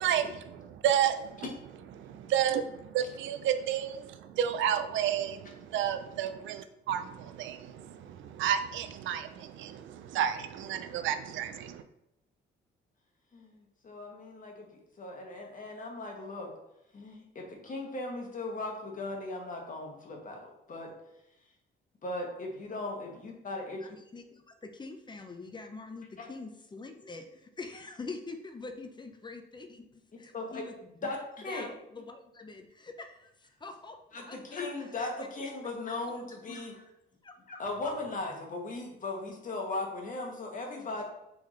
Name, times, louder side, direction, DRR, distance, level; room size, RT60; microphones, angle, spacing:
voice 1, 0.0-1.5 2.0-11.8, right 9 dB, 75° right, 9 dB, 0.4 m, -31 dB
voice 2, 13.3-14.7 15.0-16.5 16.9-20.4 20.7-20.9 22.0-23.8 26.2-26.3 30.3-30.6 31.0-31.6 34.1-36.8 37.5-41.0, left 2 dB, 40° left, 1 dB, 1.2 m, -38 dB
voice 3, 23.8-31.2 31.5-34.6 35.2-35.3 36.5-36.6 37.2-37.3, left 3 dB, 25° left, 6 dB, 0.6 m, -45 dB
3.9 x 3.4 x 3.1 m, 0.87 s
cardioid pair, 90°, 20 cm